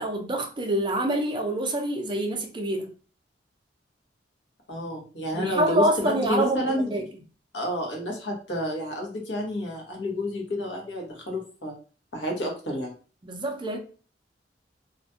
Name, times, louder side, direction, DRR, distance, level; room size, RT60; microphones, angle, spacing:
voice 1, 0.0-2.9 5.3-7.0 13.2-13.8, right 1 dB, 25° right, 0.5 m, -26 dB
voice 2, 4.7-6.9 7.5-11.8 12.1-12.9, left 1 dB, 75° left, 1.0 m, -30 dB
2.4 x 2.2 x 2.6 m
head